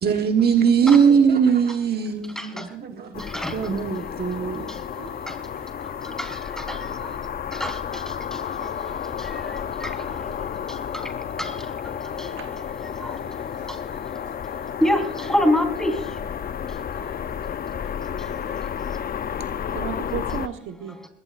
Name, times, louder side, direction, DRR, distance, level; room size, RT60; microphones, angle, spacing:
voice 1, 0.0-3.2 3.5-4.6, right 6 dB, 55° right, 1.4 m, -20 dB
voice 2, 2.4-2.8 3.2-12.5 12.8-16.2 16.7-17.2 18.0-19.0 21.0-21.1, left 1 dB, 5° left, 4.0 m, -30 dB
sound 1, 3.1-20.5, left 8 dB, 50° left, 0.7 m, -31 dB
voice 3, 6.8-7.2 8.8-8.9 9.8-9.9 10.3-10.4 12.3-12.6 15.5-15.6 19.7-21.0, right 8 dB, 85° right, 1.3 m, -36 dB
21.5 x 17.5 x 2.6 m
cardioid pair, 90°, 20 cm